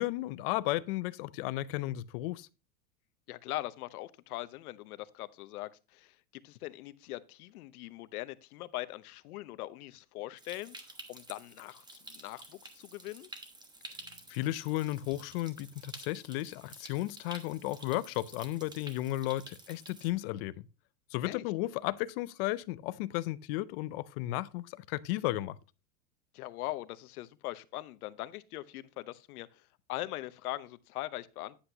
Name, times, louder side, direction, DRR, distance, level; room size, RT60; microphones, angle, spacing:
voice 1, 0.0-2.5 14.3-20.7 21.1-25.6, left 16 dB, 40° left, 0.5 m, -34 dB
voice 2, 3.3-10.8 11.1-13.3 21.2-21.4 26.3-29.6 29.9-31.6, left 16 dB, 70° left, 0.9 m, -41 dB
Stream, 10.4-20.1, right 2 dB, 10° right, 1.1 m, -51 dB
9.8 x 8.0 x 2.8 m
supercardioid pair, 135°, 46 cm